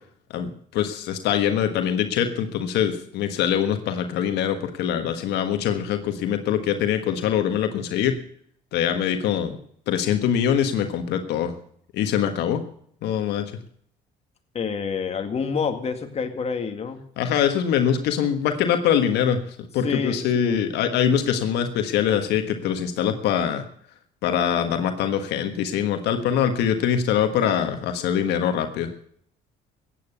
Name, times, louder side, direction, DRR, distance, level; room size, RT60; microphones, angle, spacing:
voice 1, 0.3-8.2 8.7-9.6 9.9-11.5 11.9-12.6 13.0-13.5 17.2-19.4 19.7-23.6 24.2-28.9, left 9 dB, 80° left, 7 dB, 1.5 m, -23 dB
voice 2, 14.5-17.0 19.8-20.6, left 5 dB, 40° left, 5 dB, 2.1 m, -28 dB
15.5 x 9.3 x 6.9 m, 0.64 s
cardioid pair, 110°, 17 cm